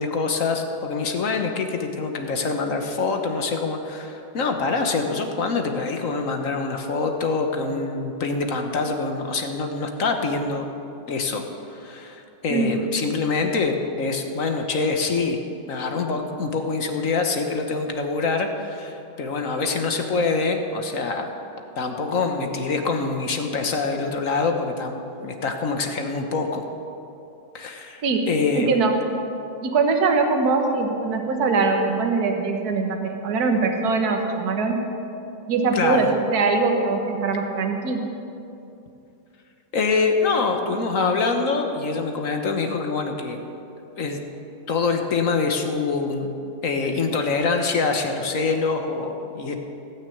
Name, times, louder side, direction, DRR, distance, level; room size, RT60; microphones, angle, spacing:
voice 1, 0.0-10.6 11.1-11.4 11.7-15.4 15.7-21.3 21.8-26.6 27.5-28.7 35.7-36.1 39.7-43.4 44.0-44.2 44.7-46.4 46.6-49.5, left 4 dB, 50° left, 4 dB, 1.3 m, -25 dB
voice 2, 28.5-29.0 29.6-34.8 35.5-38.0, right 4 dB, 60° right, 3 dB, 1.7 m, -22 dB
17.5 x 6.4 x 8.5 m, 2.7 s
omnidirectional pair, 1.9 m